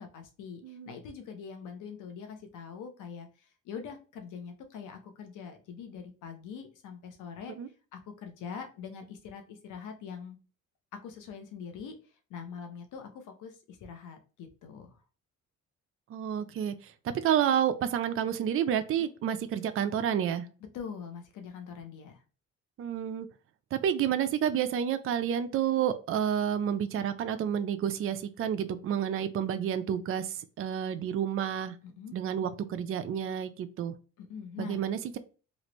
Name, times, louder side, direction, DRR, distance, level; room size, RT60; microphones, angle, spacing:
voice 1, 0.0-7.5 7.9-10.4 10.9-11.9 12.3-15.0 19.0-19.1 20.7-22.2 31.8-32.1 34.2-34.8, left 6 dB, 85° left, 5 dB, 0.9 m, -43 dB
voice 2, 0.6-0.9 7.6-7.7 16.1-20.5 22.8-23.3 23.7-31.8 32.1-33.9 34.6-35.2, right 9 dB, 45° right, 10 dB, 0.4 m, -30 dB
3.2 x 2.5 x 3.0 m, 0.36 s
cardioid pair, 90°, 30 cm